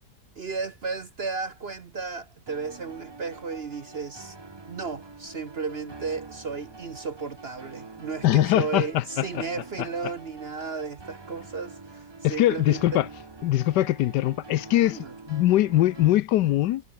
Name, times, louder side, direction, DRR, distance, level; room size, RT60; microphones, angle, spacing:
voice 1, 0.4-4.4 4.7-13.0 14.8-15.1, right 4 dB, 45° right, 0.9 m, -34 dB
sound 1, 2.5-16.2, right 3 dB, 25° right, 0.6 m, -45 dB
voice 2, 8.2-9.4 12.2-13.1 13.4-16.8, left 14 dB, 75° left, 1.2 m, -22 dB
omnidirectional pair, 1.9 m